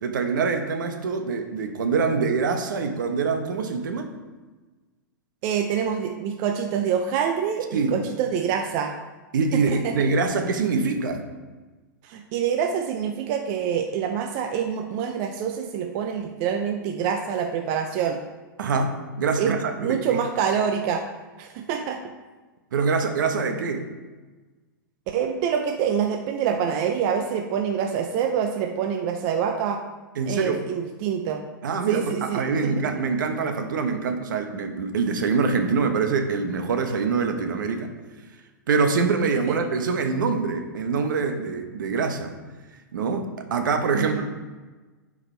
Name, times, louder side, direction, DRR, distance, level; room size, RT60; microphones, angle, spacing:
voice 1, 0.0-4.2 7.7-8.0 9.3-11.3 18.6-20.2 22.7-23.9 30.2-30.6 31.6-37.9 38.7-42.3 42.9-44.2, right 4 dB, 70° right, 6 dB, 1.1 m, -24 dB
voice 2, 5.4-8.9 9.5-9.9 12.0-18.2 19.4-21.1 21.4-22.0 25.1-29.8 30.3-31.4 31.9-32.7 39.5-39.6 43.9-44.2, right 7 dB, 45° right, 4 dB, 0.7 m, -26 dB
11.0 x 4.9 x 3.4 m, 1.3 s
hypercardioid pair, 110°, 11 cm